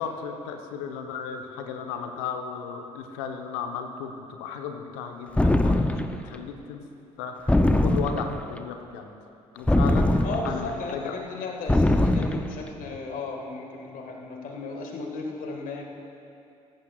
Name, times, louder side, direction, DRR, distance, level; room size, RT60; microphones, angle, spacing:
voice 1, 0.0-6.8 7.2-9.1 9.5-11.1, left 6 dB, 70° left, 4 dB, 1.0 m, -35 dB
sound 1, 5.4-6.2 7.5-8.4 9.7-10.7 11.7-12.5, left 1 dB, 5° left, 0.7 m, -22 dB
voice 2, 10.2-15.8, left 3 dB, 55° left, 1 dB, 1.8 m, -35 dB
17.0 x 14.5 x 2.4 m, 2.6 s
figure-of-eight pair, 50°, 17 cm